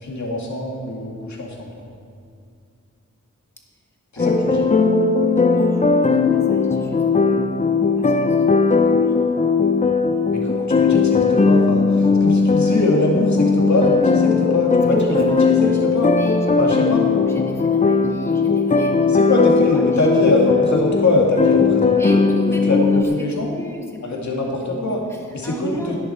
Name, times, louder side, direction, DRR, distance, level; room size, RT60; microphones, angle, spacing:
voice 1, 0.0-1.7 4.1-4.7 10.3-16.1 16.6-17.1 19.1-22.2 22.7-23.5 24.0-25.0 25.3-26.0, left 2 dB, 65° left, -1 dB, 2.3 m, -23 dB
sound 1, 4.2-23.0, left 4 dB, 25° left, 0.5 m, -18 dB
voice 2, 5.5-8.8 10.4-10.8 15.3-19.1 19.7-19.8 22.0-26.0, equal, 10° left, -1 dB, 1.5 m, -36 dB
11.0 x 11.0 x 4.4 m, 2.3 s
wide cardioid pair, 85°, 31 cm